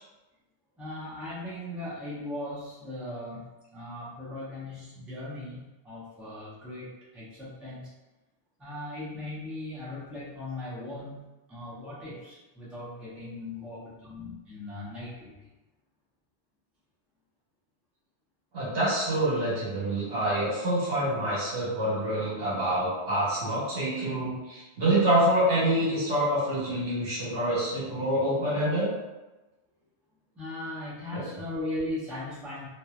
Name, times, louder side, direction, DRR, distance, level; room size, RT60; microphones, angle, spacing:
voice 1, 0.8-7.9 8.6-15.4 30.3-32.7, left 1 dB, ahead, -8 dB, 0.5 m, -38 dB
voice 2, 18.5-28.9 31.1-31.2, right 1 dB, 75° right, -8 dB, 1.5 m, -26 dB
2.9 x 2.4 x 2.4 m, 1.1 s
omnidirectional pair, 1.2 m